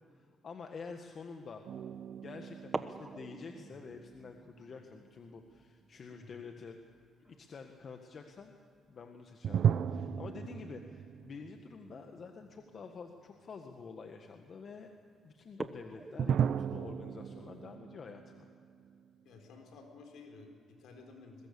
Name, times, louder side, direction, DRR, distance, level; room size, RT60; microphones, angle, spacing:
voice 1, 0.1-1.6 2.2-6.8 7.2-8.5 8.9-14.9 15.2-18.5, left 5 dB, 50° left, 4 dB, 1.6 m, -48 dB
sound 1, 1.1-1.4 2.6-9.0 9.3-9.4 9.8-10.1 11.1-11.3 12.0-12.1 12.6-12.7 13.0-13.4 14.0-14.3 14.7-14.8 15.4-17.8, right 2 dB, 20° right, 1.3 m, -47 dB
sound 2, 1.7-4.9 9.4-12.5 12.8-12.9 16.2-19.5, right 8 dB, 65° right, 0.6 m, -36 dB
voice 2, 6.1-6.4 19.2-21.5, left 3 dB, 80° left, 2 dB, 4.8 m, -53 dB
22.5 x 21.5 x 7.0 m, 2.3 s
cardioid pair, 90°, 0 cm